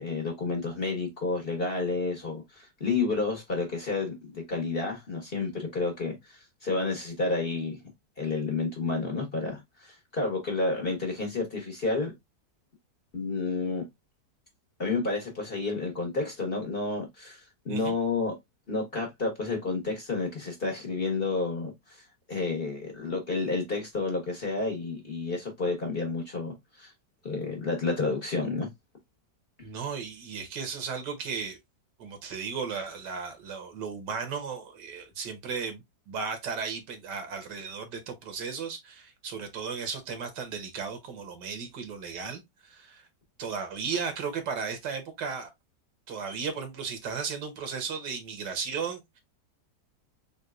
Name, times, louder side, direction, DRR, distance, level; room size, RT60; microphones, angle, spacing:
voice 1, 0.0-7.8 8.2-12.1 13.1-13.8 14.8-17.4 17.6-18.4 18.7-22.0 22.3-26.9 27.2-28.7, left 3 dB, 35° left, 1.2 m, -30 dB
voice 2, 29.6-31.6 32.0-43.0 43.4-45.5 46.1-49.2, right 5 dB, 75° right, 1.6 m, -35 dB
4.1 x 3.5 x 2.3 m
omnidirectional pair, 1.9 m